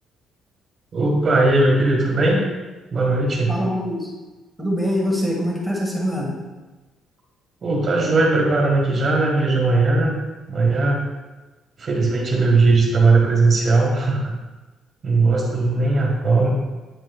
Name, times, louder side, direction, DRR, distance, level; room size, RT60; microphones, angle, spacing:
voice 1, 0.9-2.5 2.9-3.6 7.6-10.2 10.5-11.0 11.8-14.3 15.0-16.5, right 3 dB, 30° right, 0 dB, 1.6 m, -18 dB
voice 2, 3.5-4.1 4.6-6.3, equal, ahead, -3 dB, 1.6 m, -23 dB
9.1 x 7.6 x 2.3 m, 1.2 s
cardioid pair, 170°, 0 cm